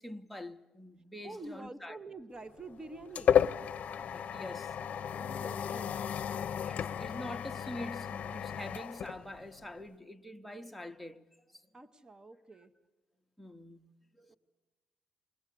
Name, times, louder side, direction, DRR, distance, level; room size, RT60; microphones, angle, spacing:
voice 1, 0.0-2.0 3.8-4.8 6.6-11.2 11.5-11.6 13.4-13.8 14.2-14.3, left 1 dB, ahead, 1.0 m, -45 dB
voice 2, 1.2-3.4 5.2-6.1 11.7-12.7 14.3-14.4, right 2 dB, 30° right, 1.0 m, -47 dB
sound 1, 2.4-9.8, left 8 dB, 60° left, 0.7 m, -33 dB
20.5 x 20.0 x 8.4 m
cardioid pair, 95°, 3 cm